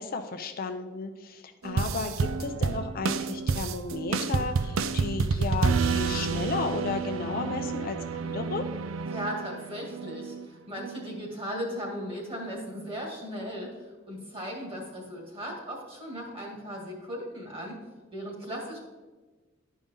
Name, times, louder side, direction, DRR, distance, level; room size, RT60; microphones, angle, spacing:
voice 1, 0.0-8.7, left 4 dB, 45° left, 7 dB, 0.5 m, -34 dB
sound 1, 1.6-10.4 10.8-11.3 11.6-12.1 12.5-12.6, right 4 dB, 80° right, 0.4 m, -30 dB
voice 2, 9.1-17.7 18.1-18.8, equal, 30° right, -1 dB, 2.1 m, -37 dB
11.5 x 5.2 x 3.7 m, 1.3 s
head